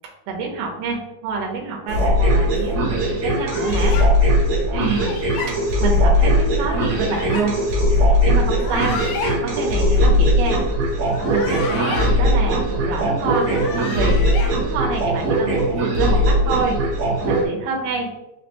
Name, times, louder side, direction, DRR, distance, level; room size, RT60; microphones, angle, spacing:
voice 1, 0.3-4.0 4.7-5.2 5.5-5.6 5.8-7.6 8.1-9.0 9.4-10.7 11.3-13.5 13.7-14.2 14.6-16.8 17.3-18.1, right 4 dB, 80° right, 0 dB, 2.5 m, -27 dB
sound 1, 1.9-17.4, equal, 60° right, 1.9 m, -19 dB
sound 2, 3.5-4.1 4.9-5.5 6.6-7.5 8.5-9.4 11.0-12.1 13.2-14.5, left 3 dB, 80° left, 2.3 m, -31 dB
5.6 x 2.1 x 2.9 m, 0.92 s
omnidirectional pair, 4.2 m